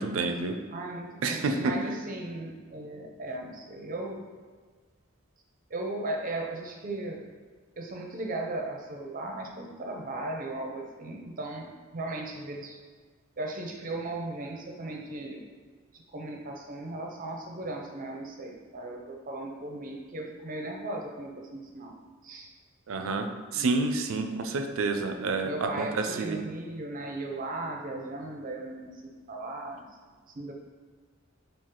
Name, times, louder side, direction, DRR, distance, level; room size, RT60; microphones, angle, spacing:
voice 1, 0.0-0.6 1.2-1.8 22.9-26.4, right 3 dB, 90° right, 6 dB, 0.4 m, -29 dB
voice 2, 0.7-4.2 5.7-7.2 7.8-12.8 13.4-15.4 15.9-21.9 22.2-22.5 23.5-23.7 25.4-28.9 29.3-29.8 30.3-30.5, right 2 dB, 45° right, 1 dB, 0.6 m, -37 dB
4.8 x 2.4 x 3.7 m, 1.5 s
head